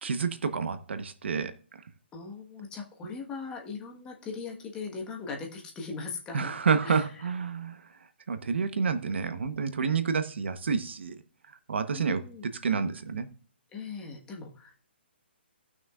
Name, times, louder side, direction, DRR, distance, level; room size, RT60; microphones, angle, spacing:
voice 1, 0.0-1.5 6.3-7.8 8.3-11.2 11.7-13.3, right 5 dB, 75° right, 1.0 m, -29 dB
voice 2, 2.1-6.5 6.8-7.1 11.9-12.4 13.7-14.8, left 5 dB, 15° left, 1.4 m, -39 dB
17.5 x 6.1 x 2.4 m
hypercardioid pair, 160°, 6 cm